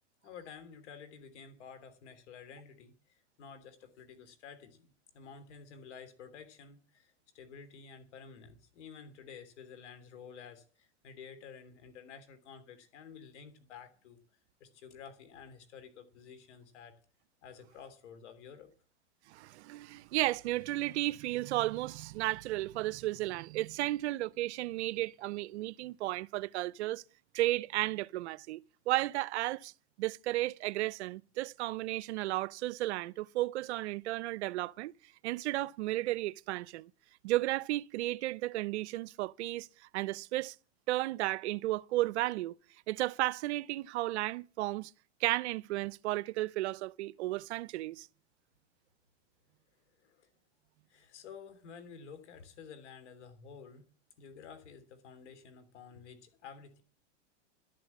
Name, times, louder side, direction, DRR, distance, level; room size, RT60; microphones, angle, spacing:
voice 1, 0.2-14.2 14.6-17.0 17.4-18.7 50.0-50.3 50.9-53.9 54.2-56.8, left 6 dB, 70° left, 3.2 m, -51 dB
voice 2, 19.3-27.0 27.3-28.6 28.9-29.7 30.0-34.9 35.2-36.9 37.2-39.7 39.9-40.5 40.9-42.6 42.9-44.9 45.2-48.1, right 17 dB, 65° right, 0.6 m, -33 dB
12.5 x 7.7 x 8.3 m
hypercardioid pair, 120°, 36 cm